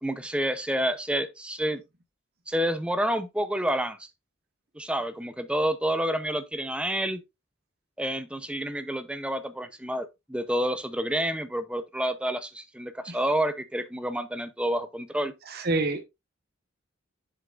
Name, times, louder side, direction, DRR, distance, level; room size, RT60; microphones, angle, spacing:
voice 1, 0.0-1.8 2.5-4.1 4.8-7.2 8.0-15.3, equal, 5° right, 0.6 m, -29 dB
voice 2, 15.5-16.0, right 2 dB, 55° right, 1.1 m, -27 dB
7.2 x 6.9 x 2.4 m
head